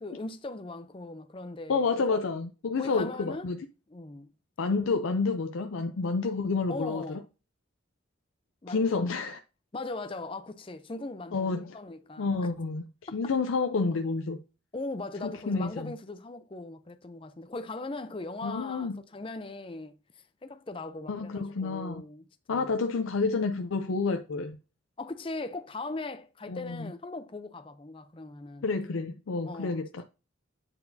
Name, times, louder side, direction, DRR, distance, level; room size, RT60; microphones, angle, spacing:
voice 1, 0.0-2.2 2.8-3.5 3.9-4.3 6.7-7.3 8.6-9.0 9.7-12.4 14.7-22.7 25.0-28.7 29.4-30.0, left 2 dB, 25° left, 0.4 m, -39 dB
voice 2, 1.7-3.6 4.6-7.2 8.7-9.4 11.3-11.8 12.2-12.9 13.1-14.4 15.2-15.9 18.4-19.0 21.1-22.0 22.5-24.6 26.5-26.9 28.6-30.0, left 4 dB, 85° left, 0.5 m, -29 dB
8.7 x 4.5 x 2.7 m
head